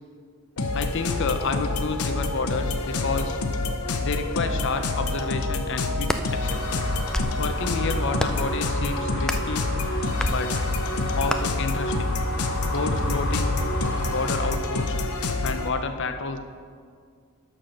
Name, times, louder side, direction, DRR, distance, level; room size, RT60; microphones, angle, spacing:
sound 1, 0.6-15.7, left 2 dB, 90° left, 0.8 m, -27 dB
voice 1, 0.7-3.4 4.0-6.6 7.4-9.7 10.3-10.7 11.2-12.2 12.7-13.6 14.1-14.9 15.4-16.4, left 4 dB, 55° left, 8 dB, 0.6 m, -30 dB
sound 2, 6.0-6.3 6.9-7.4 8.2-8.5 9.2-9.5 10.2-10.4 11.3-11.4, equal, 5° left, 0.3 m, -28 dB
sound 3, 6.4-14.5, left 1 dB, 40° left, 1.8 m, -31 dB
11.5 x 4.4 x 6.4 m, 2.1 s
head